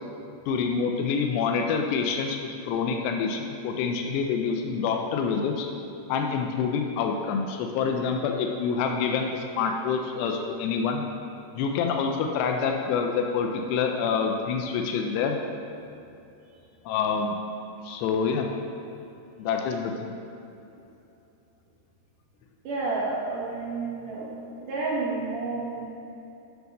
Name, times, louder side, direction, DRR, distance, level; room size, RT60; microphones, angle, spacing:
voice 1, 0.5-5.7 6.1-11.1 11.6-15.4 16.9-17.4 17.8-18.5 19.4-20.1, left 5 dB, 85° left, 3 dB, 2.6 m, -27 dB
voice 2, 22.6-24.3 24.6-25.9, right 3 dB, 70° right, -5 dB, 2.1 m, -30 dB
9.4 x 3.4 x 5.2 m, 2.8 s
omnidirectional pair, 4.9 m